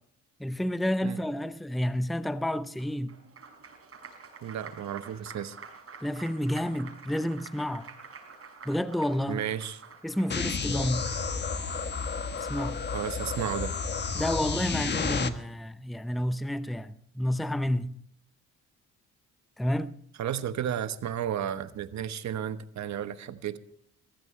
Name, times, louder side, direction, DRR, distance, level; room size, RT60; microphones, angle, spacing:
voice 1, 0.4-3.1 6.0-7.9 8.6-9.4 10.0-11.1 12.4-12.8 14.1-18.0 19.6-19.9, equal, ahead, 0.6 m, -30 dB
Applause, 2.8-11.5, right 5 dB, 50° right, 5.8 m, -48 dB
voice 2, 4.4-5.6 9.3-9.8 12.9-13.8 20.2-23.6, right 9 dB, 65° right, 1.1 m, -33 dB
sound 1, 10.3-15.3, left 5 dB, 35° left, 1.2 m, -31 dB
21.0 x 15.0 x 3.3 m
cardioid pair, 90°, 30 cm